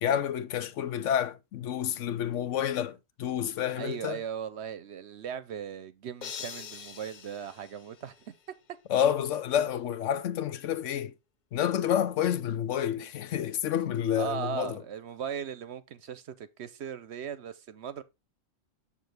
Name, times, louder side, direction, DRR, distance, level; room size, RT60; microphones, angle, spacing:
voice 1, 0.0-4.2 8.9-11.1 11.5-14.8, left 10 dB, 75° left, 1.0 m, -29 dB
voice 2, 3.7-8.3 14.2-18.0, right 8 dB, 65° right, 0.9 m, -38 dB
sound 1, 6.2-8.5, left 7 dB, 50° left, 0.6 m, -44 dB
7.5 x 6.1 x 3.3 m
omnidirectional pair, 1.3 m